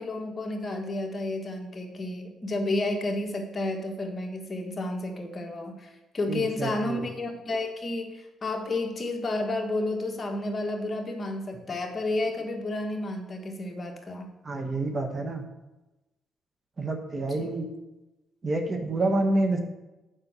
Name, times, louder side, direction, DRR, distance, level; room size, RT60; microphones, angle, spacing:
voice 1, 0.0-5.9 6.1-14.3, left 2 dB, 35° left, 3 dB, 1.4 m, -31 dB
voice 2, 6.3-7.0 14.4-15.4 16.8-17.7 18.4-19.6, right 2 dB, 35° right, 5 dB, 1.3 m, -28 dB
7.2 x 5.4 x 6.9 m, 1.0 s
cardioid pair, 90°, 0 cm